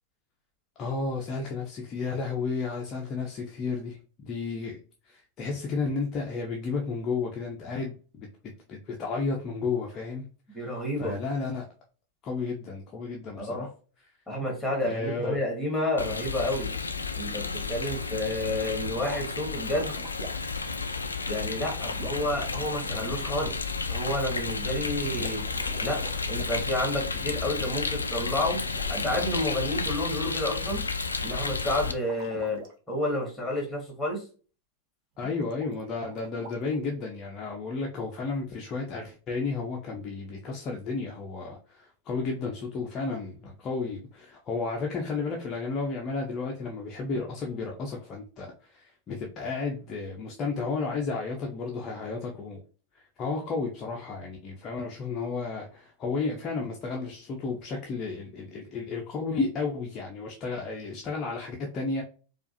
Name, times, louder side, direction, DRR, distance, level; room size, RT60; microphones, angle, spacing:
voice 1, 0.8-4.8 5.1-8.3 8.7-10.3 10.6-11.7 12.2-13.7 14.8-15.4 35.2-52.6 53.2-62.0, left 4 dB, 30° left, 0.7 m, -32 dB
voice 2, 10.5-11.2 13.4-13.7 14.3-16.7 17.2-19.9 21.3-23.5 23.9-25.4 25.8-28.6 28.9-30.9 31.2-32.6 32.9-34.2, left 1 dB, 5° left, 1.9 m, -30 dB
Rain, 16.0-31.9, left 4 dB, 75° left, 0.4 m, -32 dB
sound 1, 19.7-20.6 21.9-23.4 25.1-26.6 28.7-29.5 32.0-32.7 35.2-36.9, right 3 dB, 40° right, 0.9 m, -45 dB
4.6 x 2.5 x 2.6 m
figure-of-eight pair, 90°, 0 cm